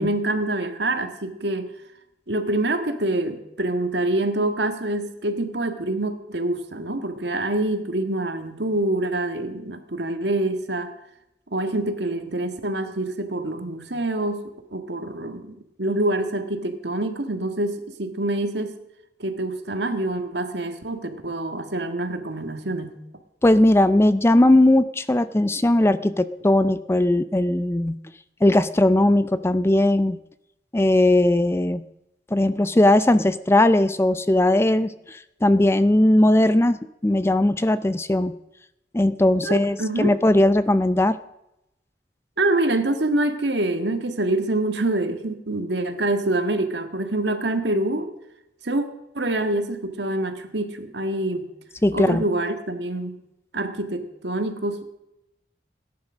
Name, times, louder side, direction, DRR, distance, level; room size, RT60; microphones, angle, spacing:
voice 1, 0.0-1.7 2.3-10.9 11.5-18.8 19.2-23.0 39.4-40.1 42.4-48.1 48.6-48.9 49.1-51.5 51.9-53.2 53.5-54.8, right 2 dB, 70° right, 6 dB, 1.7 m, -26 dB
voice 2, 23.4-28.0 28.4-30.2 30.7-31.8 32.3-38.3 38.9-41.2 51.8-52.2, left 1 dB, 15° left, 14 dB, 0.4 m, -19 dB
17.0 x 10.5 x 6.2 m, 0.86 s
head